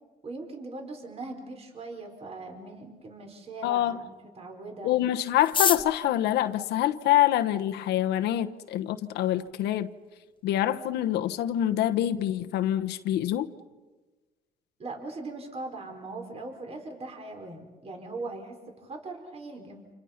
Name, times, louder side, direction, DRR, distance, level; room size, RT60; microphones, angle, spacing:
voice 1, 0.2-4.9 14.8-19.9, right 3 dB, 35° right, 4.6 m, -40 dB
voice 2, 3.6-4.0 4.8-9.9 10.4-13.5, left 12 dB, 80° left, 1.1 m, -26 dB
sound 1, 5.4-7.6 8.4-8.5 8.7-8.8 9.1-9.6 9.9-10.0 10.2-10.6 10.9-11.1 11.5-11.8, left 6 dB, 30° left, 0.9 m, -30 dB
29.5 x 28.0 x 5.9 m
cardioid pair, 110°, 17 cm